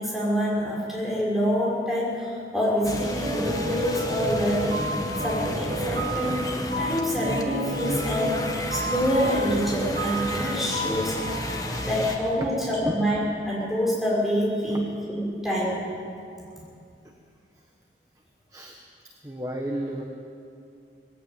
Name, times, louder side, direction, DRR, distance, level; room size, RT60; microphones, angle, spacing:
voice 1, 0.0-8.4 8.7-11.2 11.8-13.2 13.4-15.8, equal, ahead, -6 dB, 6.1 m, -26 dB
sound 1, 2.8-12.2, left 1 dB, 20° left, 1.5 m, -32 dB
sound 2, 3.2-12.5, right 2 dB, 55° right, 1.9 m, -32 dB
voice 2, 19.2-20.0, right 1 dB, 20° right, 1 dB, 1.3 m, -32 dB
19.5 x 15.5 x 9.4 m, 2.5 s
head